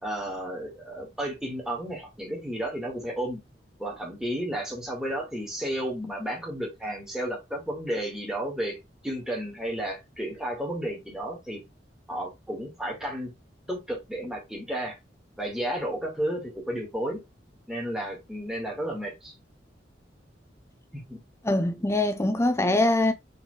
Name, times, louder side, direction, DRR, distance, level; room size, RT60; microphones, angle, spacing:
voice 1, 0.0-3.4 3.8-8.8 9.0-11.6 12.1-13.3 13.7-15.0 15.4-17.2 17.7-19.3 20.9-21.2, right 1 dB, 5° right, 1.8 m, -32 dB
voice 2, 21.5-23.1, left 2 dB, 15° left, 0.5 m, -23 dB
4.2 x 3.5 x 3.2 m
head